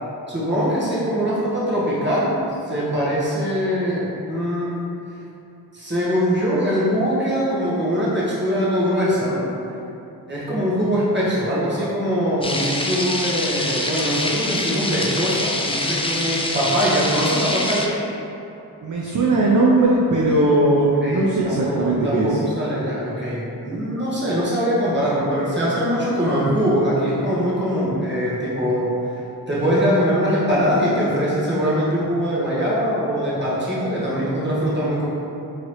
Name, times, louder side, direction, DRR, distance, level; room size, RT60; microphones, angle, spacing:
voice 1, 0.3-2.3 2.7-4.9 5.7-9.4 10.3-17.9 21.0-28.9 29.5-35.1, equal, 25° right, -8 dB, 1.3 m, -22 dB
sound 1, 12.4-17.9, left 2 dB, 15° left, 0.3 m, -25 dB
voice 2, 18.8-22.4, right 2 dB, 50° right, -4 dB, 0.5 m, -18 dB
3.7 x 3.2 x 3.1 m, 2.9 s
cardioid pair, 40°, 41 cm